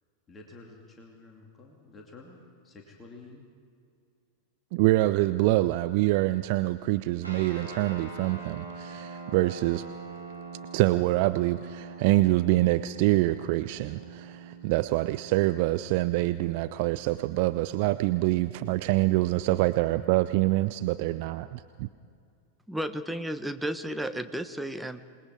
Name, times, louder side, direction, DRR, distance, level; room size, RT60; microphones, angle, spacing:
voice 1, 0.3-3.4, left 3 dB, 20° left, 0 dB, 2.5 m, -50 dB
voice 2, 4.7-9.9 10.7-21.9, right 18 dB, 45° right, 13 dB, 0.4 m, -25 dB
sound 1, 7.2-19.0, right 4 dB, 85° right, 3.4 m, -44 dB
voice 3, 22.7-25.0, right 1 dB, 5° right, 9 dB, 1.0 m, -33 dB
27.0 x 20.0 x 4.7 m, 2.3 s
figure-of-eight pair, 90°, 0 cm